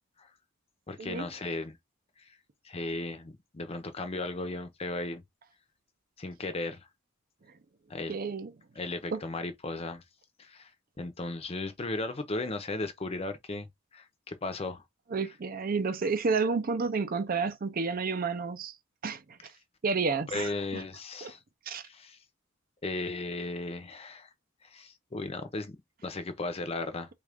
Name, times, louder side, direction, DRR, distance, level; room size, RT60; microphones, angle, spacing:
voice 1, 0.9-1.8 2.6-5.2 6.2-6.8 7.9-8.2 8.8-10.0 10.4-10.7 11.0-13.7 13.9-14.8 20.3-21.4 21.8-22.2 22.8-24.3 24.6-27.1, left 2 dB, 30° left, 0.6 m, -36 dB
voice 2, 8.1-8.5 9.1-9.2 15.1-18.7 19.0-19.2 19.8-20.8 21.2-21.3 21.7-21.8, right 4 dB, 45° right, 0.5 m, -30 dB
3.5 x 2.5 x 3.4 m
head